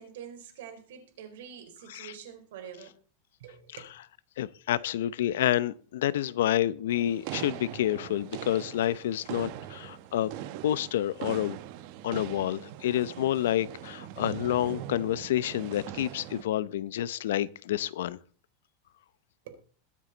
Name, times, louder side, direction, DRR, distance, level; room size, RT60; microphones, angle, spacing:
voice 1, 0.0-2.9 3.4-3.9 19.4-19.6, right 8 dB, 80° right, 4.0 m, -46 dB
voice 2, 4.4-10.3 10.6-11.6 12.0-18.2, left 12 dB, 90° left, 0.7 m, -29 dB
sound 1, 6.9-16.4, right 12 dB, 50° right, 1.0 m, -41 dB
21.5 x 7.6 x 4.0 m
supercardioid pair, 160°, 0 cm